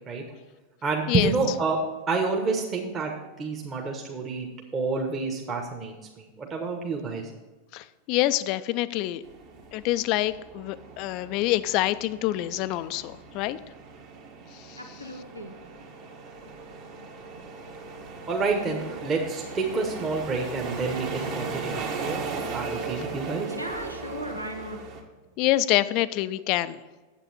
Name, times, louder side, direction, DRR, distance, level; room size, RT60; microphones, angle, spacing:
voice 1, 0.8-1.8 2.1-7.3 18.3-23.5, right 4 dB, 25° right, 0 dB, 1.3 m, -29 dB
voice 2, 7.7-9.2 9.7-13.6 25.4-26.8, left 15 dB, 40° left, 15 dB, 0.4 m, -26 dB
sound 1, 9.2-25.0, right 4 dB, 45° right, 1.7 m, -38 dB
voice 3, 14.7-15.5 23.5-24.8, equal, 85° right, 5 dB, 1.0 m, -37 dB
9.0 x 8.1 x 4.2 m, 1.3 s
figure-of-eight pair, 90°, 0 cm